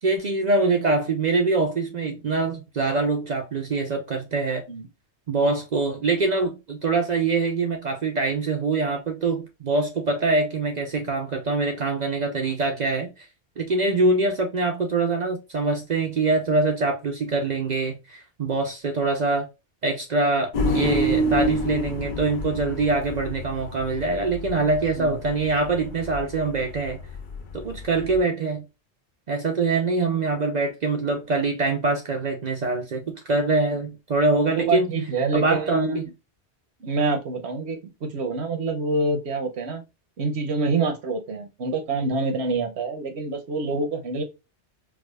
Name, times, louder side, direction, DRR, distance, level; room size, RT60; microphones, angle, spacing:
voice 1, 0.0-4.6 5.3-13.1 13.6-19.5 19.8-27.0 27.5-28.6 29.3-34.9 35.3-36.0, right 3 dB, 50° right, 0.6 m, -24 dB
sound 1, 20.5-28.2, equal, 50° left, 0.8 m, -28 dB
voice 2, 34.6-36.0 36.8-39.8 40.2-44.2, right 3 dB, 70° right, 1.1 m, -26 dB
4.8 x 2.3 x 2.2 m
omnidirectional pair, 1.1 m